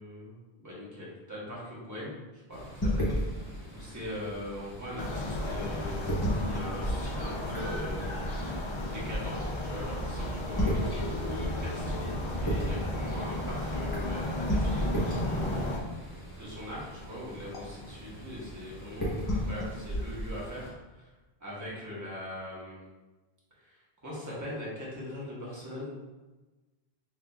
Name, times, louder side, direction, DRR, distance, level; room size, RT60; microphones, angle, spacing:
voice 1, 0.0-8.1 8.9-15.7 16.4-21.1 21.4-22.8 23.6-25.9, left 1 dB, 15° right, -7 dB, 1.1 m, -41 dB
sound 1, 2.5-20.7, equal, 20° left, 1.1 m, -35 dB
sound 2, 5.0-15.8, left 1 dB, 45° left, 0.4 m, -34 dB
5.9 x 2.8 x 2.3 m, 1.2 s
omnidirectional pair, 1.1 m